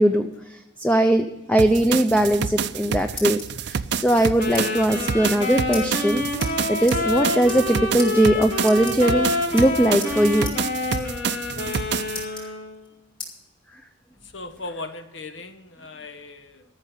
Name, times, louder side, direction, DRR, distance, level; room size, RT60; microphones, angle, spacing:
voice 1, 0.0-10.5, right 1 dB, 5° left, 6 dB, 0.5 m, -20 dB
sound 1, 1.6-12.2, right 7 dB, 60° right, 0.5 m, -28 dB
sound 2, 2.7-3.6 4.1-4.6 4.9-5.0 5.2-5.4 5.7-5.8 6.4-6.5 6.9-7.0 7.4-7.7 8.0-8.1 8.6-9.2 9.6-10.1 10.4-10.6 10.9-11.0 11.3-11.8 12.1-12.9 13.2-13.3 13.8-14.7, left 4 dB, 30° left, 4.2 m, -37 dB
sound 3, 4.4-12.8, left 2 dB, 55° left, 4.7 m, -28 dB
voice 2, 14.3-16.6, left 2 dB, 70° left, 8 dB, 1.2 m, -37 dB
13.5 x 6.6 x 9.2 m, 1.0 s
head